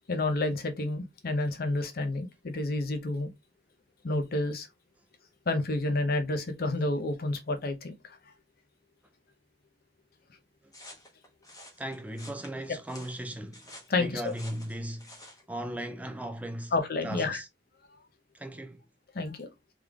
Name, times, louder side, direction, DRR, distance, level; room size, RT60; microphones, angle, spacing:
voice 1, 0.1-3.3 4.0-4.7 5.5-7.9 13.9-14.3 16.7-17.4 19.1-19.5, left 2 dB, 55° left, 0.7 m, -29 dB
sound 1, 10.7-15.4, left 1 dB, 20° left, 1.0 m, -50 dB
voice 2, 11.8-13.6 14.0-15.1 15.5-16.7 17.0-17.5 18.3-18.8, right 1 dB, 10° right, 0.4 m, -37 dB
3.6 x 3.2 x 2.3 m
head